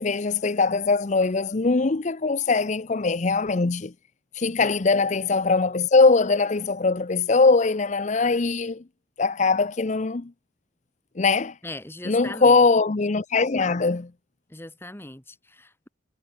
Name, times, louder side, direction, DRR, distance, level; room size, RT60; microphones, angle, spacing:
voice 1, 0.0-3.9 4.3-8.8 9.2-10.3 11.2-11.5 12.0-14.1, left 4 dB, 40° left, 0.6 m, -21 dB
voice 2, 11.6-12.6 14.5-15.9, left 1 dB, 10° left, 1.7 m, -39 dB
head